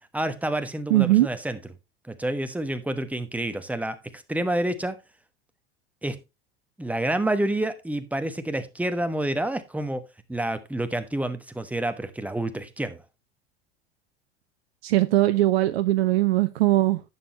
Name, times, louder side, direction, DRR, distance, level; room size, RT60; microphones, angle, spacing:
voice 1, 0.1-1.6 2.1-5.0 6.0-6.2 6.8-10.0 10.3-13.0, right 1 dB, 5° right, 1.2 m, -28 dB
voice 2, 0.9-1.3 14.8-17.0, right 16 dB, 65° right, 0.7 m, -20 dB
11.0 x 7.9 x 3.0 m
figure-of-eight pair, 80°, 33 cm